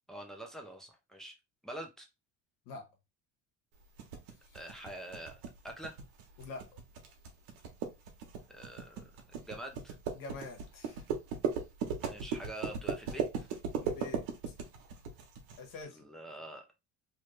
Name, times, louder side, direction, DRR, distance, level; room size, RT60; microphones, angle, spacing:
voice 1, 0.1-1.4 1.6-2.1 4.5-6.0 8.5-9.1 9.5-10.0 12.0-13.5 16.0-16.7, right 1 dB, ahead, 0.7 m, -45 dB
sound 1, 4.0-15.6, right 6 dB, 85° right, 1.1 m, -37 dB
voice 2, 6.4-6.7 10.1-11.1 13.8-14.5 15.6-16.1, left 4 dB, 80° left, 1.5 m, -46 dB
3.3 x 2.6 x 3.2 m
cardioid pair, 135°, 33 cm